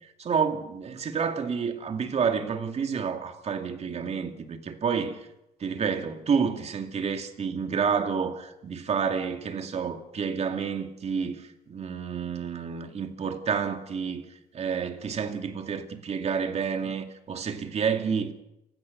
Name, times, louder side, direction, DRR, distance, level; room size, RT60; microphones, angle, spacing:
voice 1, 0.2-5.3 5.6-14.2 14.5-18.3, right 6 dB, 40° right, 2.5 m, -29 dB
29.5 x 16.5 x 5.5 m
cardioid pair, 110°, 17 cm